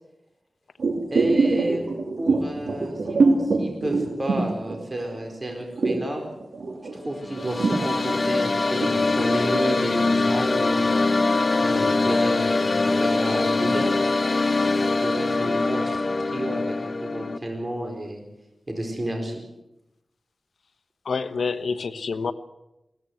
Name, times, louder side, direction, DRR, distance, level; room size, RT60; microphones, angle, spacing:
sound 1, 0.8-5.2 5.5-9.0 9.4-9.5, right 3 dB, 85° right, 2.9 m, -24 dB
voice 1, 1.1-1.8 2.2-6.2 6.9-10.9 11.6-14.0 14.7-18.2 18.7-19.4, right 1 dB, 30° right, 3 dB, 4.6 m, -31 dB
sound 2, 7.1-17.4, left 3 dB, 40° left, 1.2 m, -23 dB
voice 2, 21.0-22.3, left 5 dB, 80° left, 12 dB, 1.2 m, -27 dB
21.5 x 17.5 x 7.9 m, 0.93 s
wide cardioid pair, 75°, 0 cm